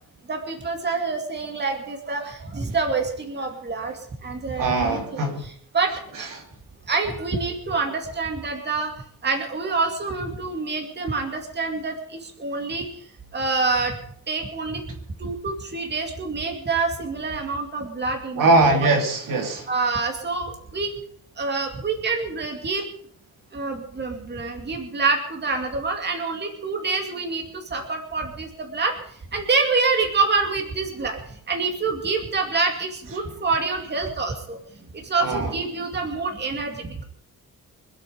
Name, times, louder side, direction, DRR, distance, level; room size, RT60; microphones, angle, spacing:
voice 1, 0.3-6.4 6.9-8.9 9.2-12.9 13.3-14.0 14.3-14.8 15.2-18.6 19.7-20.9 21.4-22.9 23.5-28.9 29.3-34.6 34.9-37.0, right 4 dB, 30° right, 3 dB, 2.4 m, -26 dB
voice 2, 4.6-5.4 18.4-19.7 35.2-35.5, right 2 dB, 70° right, 3 dB, 2.7 m, -21 dB
25.0 x 9.0 x 5.2 m, 0.62 s
wide cardioid pair, 170°, 34 cm